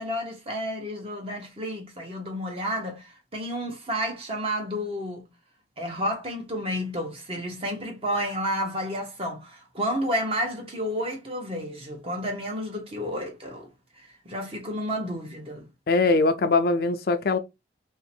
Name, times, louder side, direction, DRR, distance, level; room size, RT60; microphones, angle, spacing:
voice 1, 0.0-5.2 5.8-13.7 14.0-15.7, equal, 30° right, 1.0 m, -31 dB
voice 2, 15.9-17.4, left 3 dB, 55° left, 0.4 m, -21 dB
3.0 x 2.8 x 4.3 m
head